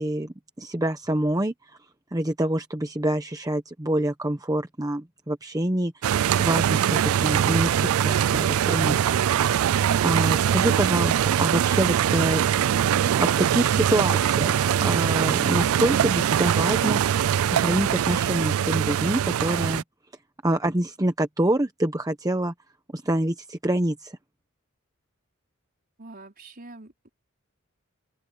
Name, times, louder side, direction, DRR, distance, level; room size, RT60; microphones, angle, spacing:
voice 1, 0.0-1.5 2.1-9.0 10.0-12.4 13.2-17.0 17.5-19.8 20.4-22.5 22.9-24.2, right 1 dB, 15° right, 0.9 m, -26 dB
sound 1, 6.0-19.8, right 9 dB, 80° right, 0.3 m, -22 dB
voice 2, 26.0-27.1, right 2 dB, 45° right, 4.7 m, -45 dB
open air
head